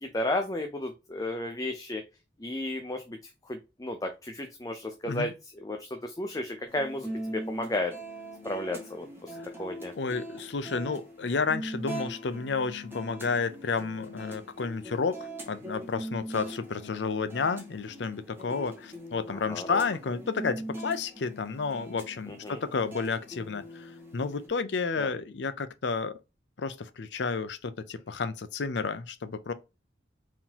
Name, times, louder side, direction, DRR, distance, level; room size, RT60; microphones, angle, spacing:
voice 1, 0.0-2.0 2.4-3.2 3.5-7.9 8.4-9.9 19.3-19.8 22.4-22.6 25.0-25.1, left 1 dB, 20° left, 0.5 m, -33 dB
sound 1, 6.7-24.5, equal, 15° right, 1.6 m, -41 dB
voice 2, 10.0-26.2 26.6-29.5, left 4 dB, 75° left, 0.6 m, -31 dB
4.6 x 3.7 x 2.8 m
head